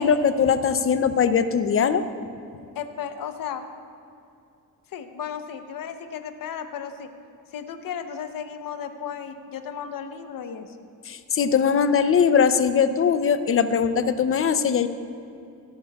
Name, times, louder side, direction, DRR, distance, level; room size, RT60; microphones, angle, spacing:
voice 1, 0.0-2.0 11.1-14.9, left 7 dB, 40° left, 11 dB, 0.6 m, -21 dB
voice 2, 2.7-3.7 4.9-7.1 7.5-10.9, left 7 dB, 65° left, 8 dB, 0.9 m, -34 dB
23.0 x 11.0 x 2.4 m, 2.5 s
cardioid pair, 135°, 36 cm